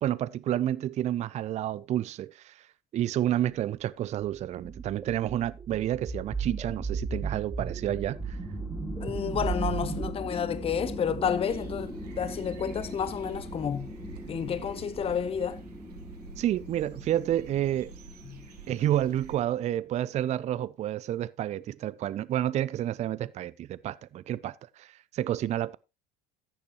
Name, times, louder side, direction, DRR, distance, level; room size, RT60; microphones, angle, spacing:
voice 1, 0.0-2.6 2.9-8.4 16.4-17.9 18.7-25.8, right 12 dB, 35° right, 0.5 m, -30 dB
sound 1, 4.3-10.1, right 5 dB, 15° right, 1.3 m, -35 dB
sound 2, 7.7-19.7, equal, ahead, 3.6 m, -41 dB
voice 2, 9.0-13.9 14.3-15.6 18.3-18.4, left 8 dB, 30° left, 0.9 m, -30 dB
sound 3, 11.4-19.3, right 3 dB, 90° right, 1.5 m, -48 dB
15.5 x 6.7 x 3.0 m
hypercardioid pair, 85°, 20 cm